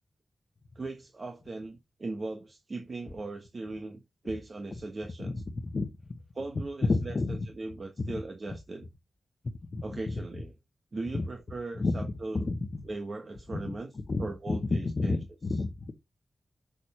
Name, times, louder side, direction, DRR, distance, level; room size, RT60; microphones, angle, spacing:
voice 1, 0.7-5.3 6.3-8.9 9.8-10.5 10.9-12.4 12.8-13.9 14.2-15.2, right 2 dB, 40° right, 1.2 m, -38 dB
voice 2, 5.2-6.2 6.9-7.5 8.0-8.2 9.7-10.1 11.1-11.2 11.8-12.6 13.6-15.9, left 3 dB, 40° left, 1.2 m, -31 dB
6.4 x 6.4 x 4.3 m
wide cardioid pair, 160°, 0 cm